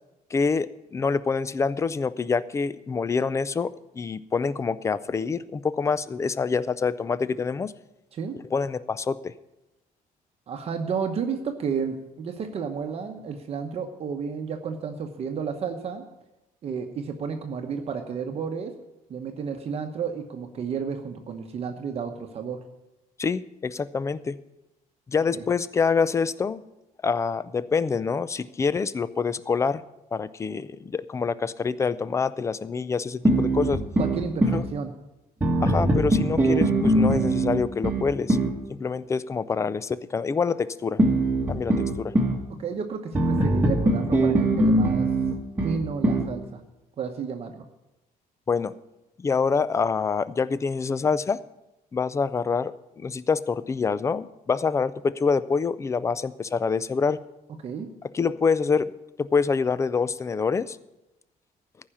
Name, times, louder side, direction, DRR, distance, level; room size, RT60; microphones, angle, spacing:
voice 1, 0.3-7.7 8.5-9.3 23.2-24.4 25.1-26.6 27.0-29.8 30.1-33.8 34.5-34.6 35.6-38.4 38.7-41.0 41.5-42.1 48.5-48.7 49.2-51.4 51.9-57.2 58.1-58.9 59.2-60.8, left 5 dB, 20° left, 17 dB, 0.4 m, -26 dB
voice 2, 10.5-16.0 16.6-18.7 19.1-22.6 25.3-25.4 34.0-34.9 42.5-45.1 45.6-46.6 47.0-47.6 57.6-57.9, right 6 dB, 40° right, 4 dB, 1.0 m, -32 dB
sound 1, 33.3-34.7 35.4-38.6 41.0-42.4 43.1-46.3, right 1 dB, 15° right, 1.4 m, -22 dB
14.5 x 5.6 x 8.8 m, 0.96 s
cardioid pair, 155°, 15 cm